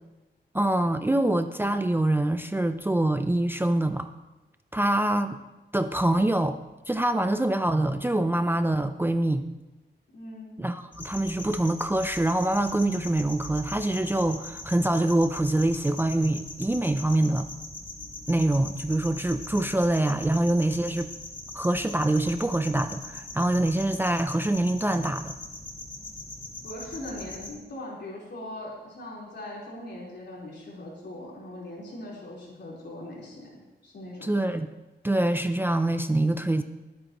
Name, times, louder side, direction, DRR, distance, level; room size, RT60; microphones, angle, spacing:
voice 1, 0.5-4.1 4.7-5.4 5.7-6.6 6.9-9.4 10.6-17.5 18.3-21.1 21.5-25.4 34.2-34.7 35.0-36.6, right 1 dB, 10° right, 8 dB, 0.4 m, -25 dB
voice 2, 10.1-10.6 26.6-34.5, left 1 dB, 70° left, -4 dB, 4.0 m, -40 dB
sound 1, 10.9-27.5, left 2 dB, 45° left, 1.9 m, -41 dB
22.0 x 8.9 x 3.0 m, 1.1 s
wide cardioid pair, 155°, 19 cm